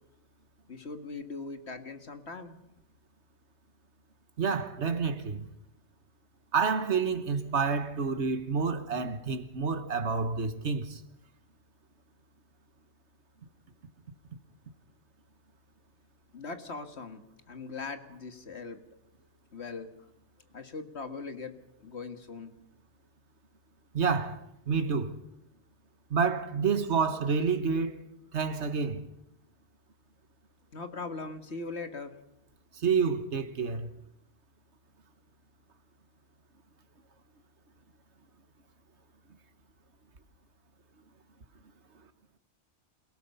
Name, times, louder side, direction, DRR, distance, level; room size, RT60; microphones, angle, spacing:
voice 1, 0.7-2.6 16.3-17.2 17.5-18.8 19.5-19.9 20.5-21.6 21.8-22.5 30.7-32.2, left 4 dB, 65° left, 2.1 m, -40 dB
voice 2, 4.4-5.5 6.5-11.0 23.9-25.2 26.1-28.0 28.3-29.1 32.7-33.9, right 5 dB, 70° right, 1.7 m, -29 dB
28.0 x 17.5 x 5.6 m
omnidirectional pair, 1.2 m